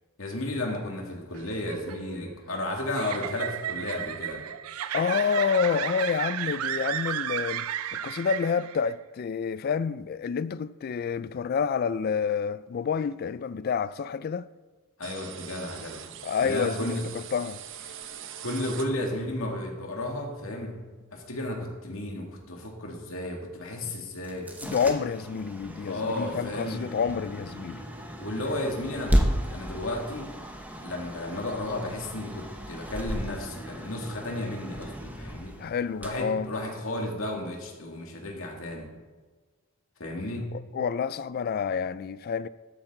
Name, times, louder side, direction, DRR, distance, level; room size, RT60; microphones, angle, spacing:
voice 1, 0.2-4.4 15.0-16.0 16.4-17.1 18.4-20.8 21.1-24.5 25.8-26.9 28.2-30.3 30.8-35.6 36.0-38.9 40.0-40.5, left 1 dB, 70° left, 2.3 m, -33 dB
sound 1, 1.3-8.9, right 10 dB, 90° right, 0.4 m, -33 dB
voice 2, 4.9-7.7 7.9-14.5 16.2-17.6 23.8-23.9 24.6-27.8 35.6-36.5 40.5-42.5, left 6 dB, 45° left, 0.3 m, -28 dB
sound 2, 15.0-19.4, right 9 dB, 60° right, 0.7 m, -42 dB
sound 3, 24.2-37.1, equal, 10° right, 0.9 m, -34 dB
13.0 x 8.9 x 3.8 m
head